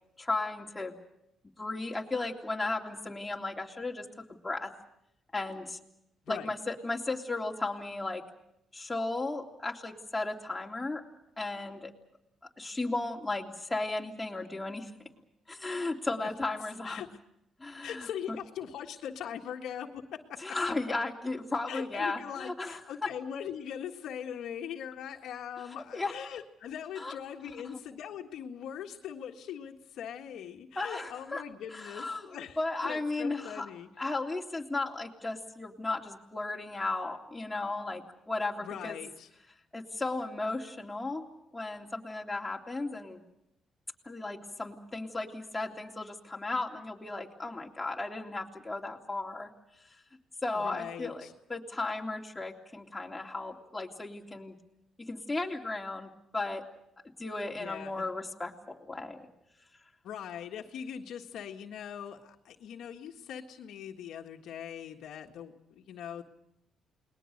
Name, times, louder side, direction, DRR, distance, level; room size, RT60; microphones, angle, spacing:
voice 1, 0.2-1.0 1.6-4.0 4.4-4.7 5.3-5.8 6.3-8.2 8.7-11.0 11.4-11.9 12.6-14.9 15.5-17.0 17.6-18.4 20.4-22.8 25.9-26.1 27.0-27.1 27.6-27.8 30.7-31.4 31.7-33.7 34.0-39.0 39.7-41.2 41.5-43.2 44.0-49.5 50.4-54.5 55.0-56.6 57.2-59.2, left 2 dB, 15° left, -1 dB, 3.3 m, -35 dB
voice 2, 17.8-20.4 21.7-33.9 38.6-39.3 50.5-51.3 57.5-58.0 60.0-66.2, left 9 dB, 80° left, 3 dB, 1.6 m, -41 dB
29.0 x 20.5 x 6.6 m, 0.82 s
cardioid pair, 90°, 0 cm